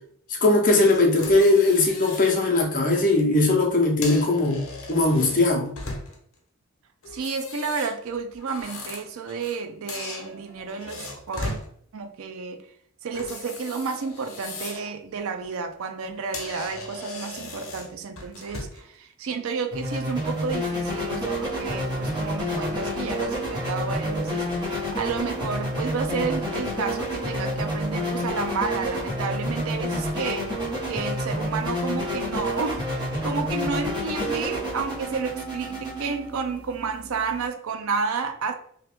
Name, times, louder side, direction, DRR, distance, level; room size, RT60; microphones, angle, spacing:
voice 1, 0.4-4.6 4.9-5.7, left 2 dB, 40° left, 0.7 m, -19 dB
sound 1, 0.8-2.4 2.8-3.0 3.8-6.3 7.0-9.6 9.9-11.7 13.1-14.9 15.3-15.6 16.0-16.1 16.3-18.9, left 2 dB, 70° left, 0.8 m, -38 dB
voice 2, 7.1-11.6 11.9-12.6 13.0-38.5, right 5 dB, 70° right, 0.5 m, -31 dB
sound 2, 19.7-37.5, equal, 20° right, 1.2 m, -29 dB
3.0 x 2.5 x 3.4 m
head